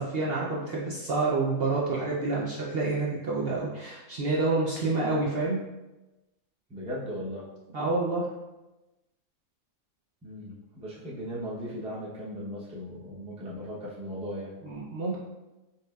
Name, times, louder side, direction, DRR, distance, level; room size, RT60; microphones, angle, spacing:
voice 1, 0.0-5.6 7.7-8.3 14.6-15.2, right 3 dB, 55° right, -5 dB, 0.7 m, -28 dB
voice 2, 6.7-7.4 10.2-14.5, equal, 5° right, -6 dB, 0.6 m, -37 dB
5.6 x 3.0 x 2.4 m, 1.0 s
omnidirectional pair, 1.4 m